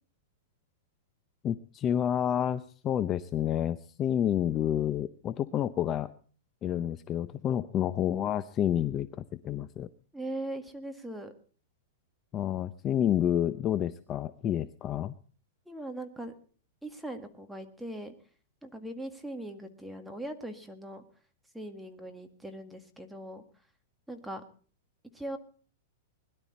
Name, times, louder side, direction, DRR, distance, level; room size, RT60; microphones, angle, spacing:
voice 1, 1.4-6.1 6.6-9.9 12.3-15.1, left 10 dB, 25° left, 13 dB, 0.6 m, -29 dB
voice 2, 10.1-11.3 15.7-16.4 16.8-18.1 18.6-21.0 21.5-23.4 24.1-24.4 25.1-25.4, right 1 dB, ahead, 5 dB, 1.9 m, -40 dB
21.0 x 12.0 x 4.2 m, 0.42 s
supercardioid pair, 150°, 0 cm